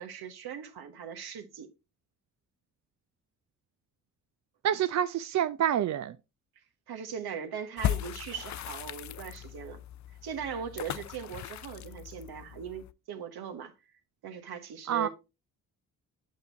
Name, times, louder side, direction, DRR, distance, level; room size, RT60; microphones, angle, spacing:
voice 1, 0.0-1.7 6.9-9.8 10.2-13.7 14.2-15.1, right 7 dB, 65° right, 1.3 m, -39 dB
voice 2, 4.6-6.2 14.9-15.1, right 10 dB, 45° right, 0.5 m, -27 dB
sound 1, 7.8-12.9, left 12 dB, 45° left, 0.5 m, -37 dB
8.0 x 6.4 x 2.6 m
hypercardioid pair, 45°, 42 cm